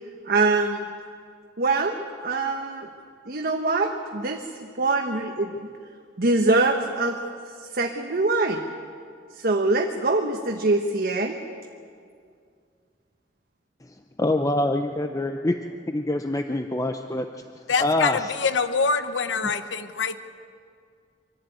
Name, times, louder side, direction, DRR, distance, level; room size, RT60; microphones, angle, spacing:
voice 1, 0.3-0.8 1.6-2.9 3.3-5.7 6.2-7.2 7.7-8.6 9.3-11.4, right 3 dB, 55° right, 3 dB, 1.2 m, -24 dB
voice 2, 14.2-15.6 15.9-17.3 17.8-18.3 19.4-19.5, left 1 dB, 20° left, 6 dB, 0.6 m, -25 dB
voice 3, 17.7-20.2, left 5 dB, 85° left, 11 dB, 0.9 m, -25 dB
25.0 x 12.0 x 9.3 m, 2.2 s
head